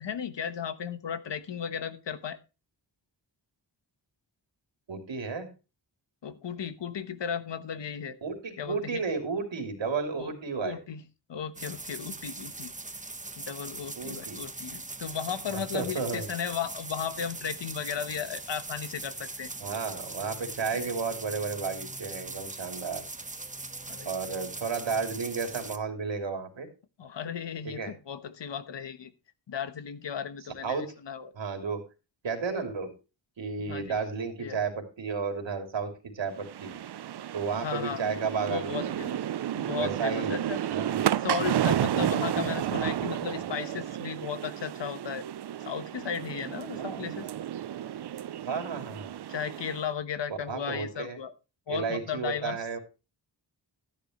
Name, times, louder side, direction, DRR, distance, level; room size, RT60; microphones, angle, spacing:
voice 1, 0.0-2.4 6.2-8.2 8.6-9.0 10.2-10.3 10.6-11.0 11.3-12.7 13.4-19.5 20.7-20.8 23.9-24.1 27.0-29.1 29.5-31.3 33.6-34.0 34.4-34.6 37.6-38.0 38.4-39.2 39.5-40.6 41.2-45.3 45.6-47.3 49.3-51.3 51.7-52.6, left 7 dB, 75° left, 13 dB, 1.2 m, -35 dB
voice 2, 4.9-5.5 8.2-10.8 14.0-14.4 15.5-16.3 19.6-23.0 24.0-26.7 27.6-27.9 30.6-30.9 31.3-31.8 32.2-32.9 33.4-36.7 37.3-39.0 39.8-41.1 46.8-47.0 48.4-49.2 50.5-51.2 51.7-52.8, right 5 dB, 85° right, 5 dB, 3.1 m, -33 dB
sound 1, 11.5-25.8, right 2 dB, 15° right, 1.1 m, -41 dB
sound 2, 36.4-49.9, right 11 dB, 65° right, 0.6 m, -32 dB
13.0 x 10.5 x 3.1 m, 0.30 s
wide cardioid pair, 110°, 44 cm